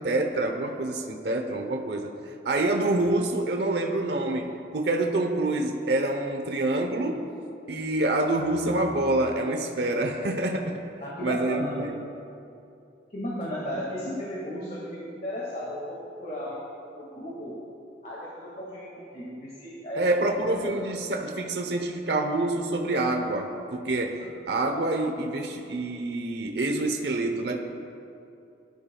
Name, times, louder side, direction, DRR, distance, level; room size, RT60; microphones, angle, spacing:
voice 1, 0.0-2.1 2.4-7.2 7.7-10.8 11.2-11.9 19.9-24.2 24.5-27.6, right 2 dB, 65° right, 3 dB, 0.9 m, -27 dB
voice 2, 11.0-11.8 13.1-16.6 16.9-17.6 18.0-20.8, left 1 dB, 40° left, -6 dB, 2.0 m, -35 dB
20.0 x 12.0 x 2.4 m, 2.7 s
head